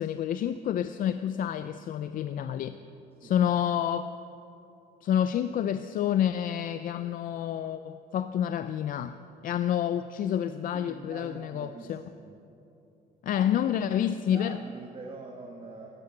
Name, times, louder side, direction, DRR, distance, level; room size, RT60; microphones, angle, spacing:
voice 1, 0.0-2.8 3.2-4.1 5.0-9.2 9.4-12.0 13.2-14.6, left 10 dB, 55° left, 12 dB, 0.5 m, -28 dB
voice 2, 10.7-12.4 13.4-13.5 14.3-15.9, right 3 dB, 35° right, 1 dB, 1.4 m, -44 dB
15.0 x 10.5 x 7.2 m, 2.9 s
cardioid pair, 110°, 17 cm